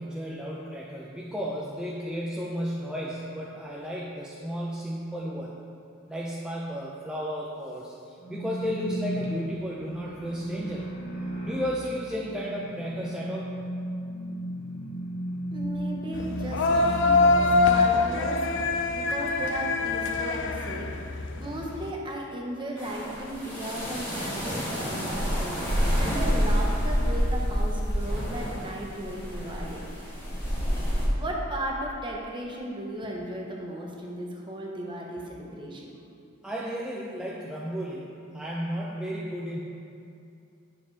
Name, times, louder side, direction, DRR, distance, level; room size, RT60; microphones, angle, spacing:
voice 1, 0.0-5.5 6.1-10.9 11.4-13.5 36.4-39.6, equal, 5° right, -5 dB, 0.5 m, -33 dB
sound 1, 8.2-17.8, right 1 dB, 80° left, 1.9 m, -35 dB
voice 2, 15.5-18.4 18.9-25.6 26.0-30.2 31.2-35.9, right 1 dB, 25° right, -1 dB, 1.0 m, -36 dB
sound 2, 16.1-21.9, left 3 dB, 60° left, 0.5 m, -24 dB
sound 3, 22.8-31.1, equal, 10° left, 1.9 m, -28 dB
9.8 x 6.6 x 3.4 m, 2.5 s
head